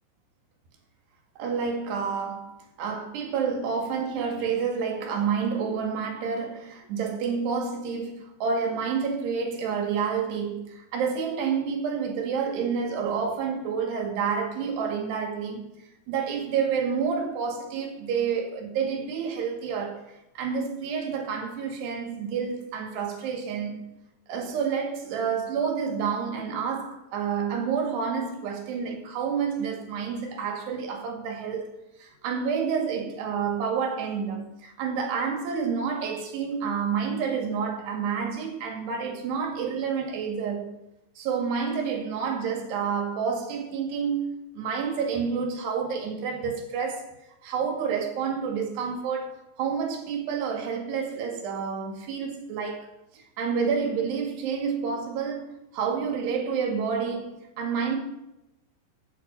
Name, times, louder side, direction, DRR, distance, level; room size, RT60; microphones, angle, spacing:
voice 1, 1.4-15.6 16.1-20.0 20.4-23.9 24.3-31.7 32.0-40.7 41.2-47.1 47.4-52.9 53.1-58.0, right 6 dB, 70° right, 4.0 m, -29 dB
15.5 x 8.5 x 5.5 m
omnidirectional pair, 5.0 m